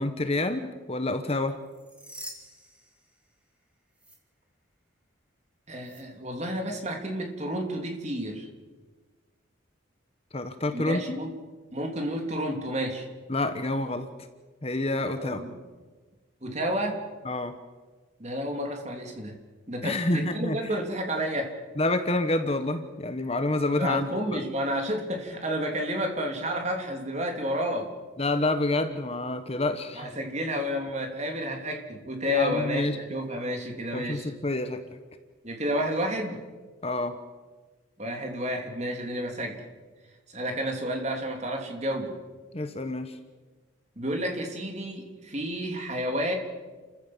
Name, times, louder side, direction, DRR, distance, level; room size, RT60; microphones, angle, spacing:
voice 1, 0.0-1.6 10.3-11.2 13.3-14.1 14.6-15.4 17.2-17.6 19.8-20.7 21.8-24.4 28.2-30.2 32.2-33.0 33.9-34.8 36.8-37.2 42.5-43.1, left 2 dB, 30° left, 9 dB, 1.1 m, -28 dB
sound 1, 1.6-3.6 3.9-4.2 5.8-6.0, right 1 dB, 5° right, 2.8 m, -46 dB
voice 2, 5.7-8.5 10.7-11.3 11.7-13.1 15.0-15.6 16.4-17.0 18.2-19.3 19.7-21.5 23.7-27.9 30.0-34.3 35.4-36.4 38.0-39.6 40.3-42.2 44.0-46.3, equal, 35° right, 3 dB, 3.1 m, -31 dB
30.0 x 14.5 x 7.4 m, 1.3 s
head